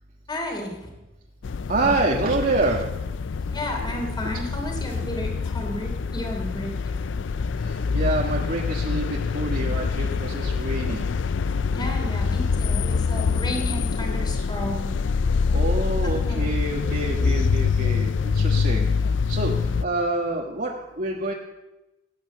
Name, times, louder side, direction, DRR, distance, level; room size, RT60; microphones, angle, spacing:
voice 1, 0.3-0.9 1.8-1.9 3.5-7.0 11.7-14.9 16.0-16.5 17.2-17.5, left 1 dB, 25° left, 2 dB, 3.0 m, -33 dB
sound 1, 1.4-19.8, left 5 dB, 70° left, 0.4 m, -25 dB
voice 2, 1.7-2.9 5.0-5.1 7.6-11.0 15.5-18.9 19.3-21.3, right 2 dB, 50° right, -1 dB, 1.5 m, -27 dB
17.5 x 8.9 x 8.5 m, 1.0 s
head